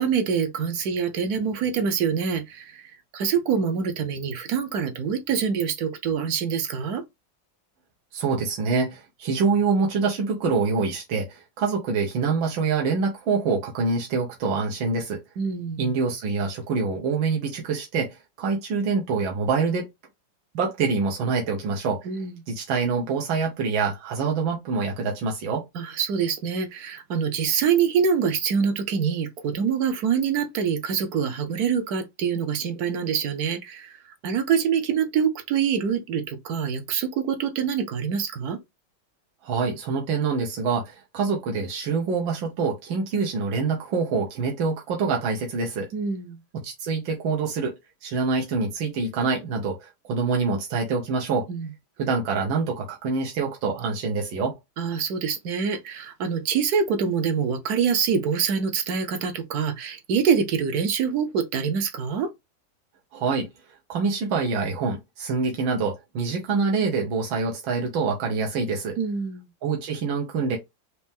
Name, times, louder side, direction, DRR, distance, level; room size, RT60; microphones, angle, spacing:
voice 1, 0.0-2.8 3.1-7.0 15.4-15.9 22.0-22.3 25.7-33.9 34.2-38.6 45.9-46.4 51.5-51.7 54.8-62.3 69.0-69.4, right 6 dB, 60° right, 1.1 m, -25 dB
voice 2, 8.1-15.2 15.8-19.9 20.6-22.1 22.5-25.6 39.4-45.9 46.6-47.8 48.0-51.5 52.0-54.5 63.1-63.5 63.9-69.0 69.6-70.6, right 4 dB, 85° right, 1.7 m, -25 dB
4.2 x 2.9 x 3.5 m
omnidirectional pair, 2.1 m